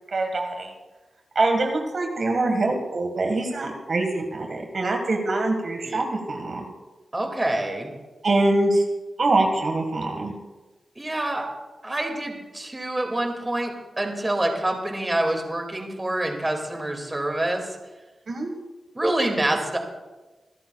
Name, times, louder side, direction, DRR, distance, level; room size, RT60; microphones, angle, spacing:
voice 1, 0.1-0.7 1.3-6.6 8.2-8.8 9.2-10.3 18.3-18.5, right 2 dB, 55° right, 3 dB, 1.6 m, -24 dB
voice 2, 7.1-7.9 11.0-11.5 11.8-17.7 18.9-19.8, right 1 dB, 20° right, 2 dB, 2.2 m, -26 dB
26.0 x 13.0 x 2.3 m, 1.2 s
wide cardioid pair, 130°, 0 cm